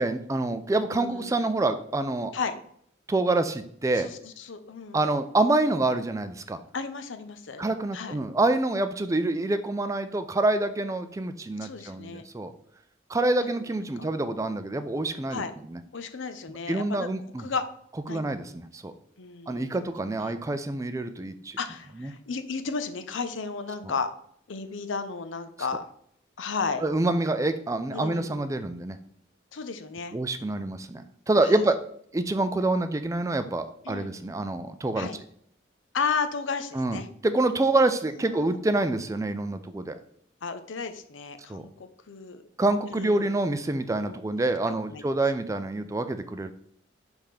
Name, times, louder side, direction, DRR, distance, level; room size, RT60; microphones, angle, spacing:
voice 1, 0.0-2.3 3.1-4.1 4.9-6.6 7.6-12.5 13.1-15.8 16.7-17.5 18.1-18.9 19.5-21.6 22.0-22.1 23.8-23.9 26.8-29.0 30.1-31.8 32.1-35.1 36.7-40.0 41.5-41.7 42.6-46.5, right 2 dB, 15° right, 10 dB, 0.4 m, -27 dB
voice 2, 0.9-1.4 2.3-2.6 4.0-5.1 6.7-7.6 7.9-8.2 11.6-12.2 14.0-14.1 15.3-15.5 15.9-17.1 17.4-17.6 18.1-18.2 19.2-19.9 20.2-20.3 21.6-24.1 24.5-25.8 26.4-26.8 27.9-28.4 29.5-30.2 31.5-31.6 33.8-34.2 35.0-35.2 35.9-37.1 38.3-38.6 40.4-42.4 42.9-43.3 44.0-44.2 44.9-45.0, left 5 dB, 80° left, 9 dB, 0.6 m, -33 dB
5.1 x 3.5 x 5.7 m, 0.65 s
head